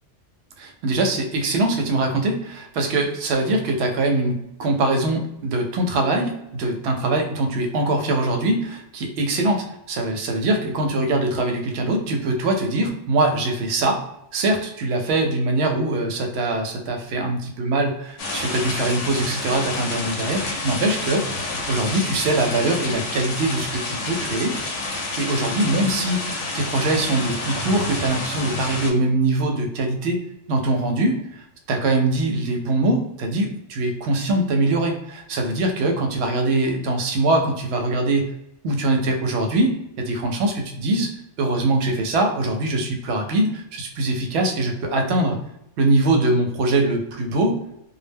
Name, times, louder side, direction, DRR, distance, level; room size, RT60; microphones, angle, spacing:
voice 1, 0.6-14.0 14.3-24.6 25.2-30.2 30.5-38.2 38.6-41.1 41.4-45.4 45.8-47.6, right 2 dB, 70° right, 3 dB, 0.8 m, -22 dB
sound 1, 18.2-28.9, left 2 dB, 85° left, 0.9 m, -29 dB
2.2 x 2.1 x 3.3 m, 0.79 s
omnidirectional pair, 1.2 m